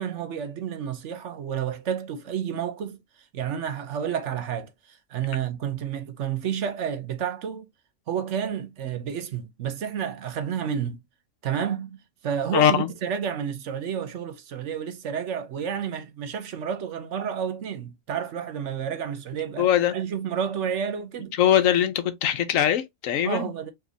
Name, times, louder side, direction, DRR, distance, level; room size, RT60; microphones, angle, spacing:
voice 1, 0.0-3.0 3.3-7.7 8.1-11.0 11.4-12.0 12.2-19.7 19.9-21.4 23.2-23.7, right 8 dB, 70° right, 1.1 m, -30 dB
voice 2, 12.5-12.9 19.6-20.0 21.4-23.5, left 10 dB, 90° left, 1.1 m, -21 dB
5.1 x 2.9 x 2.6 m
omnidirectional pair, 1.3 m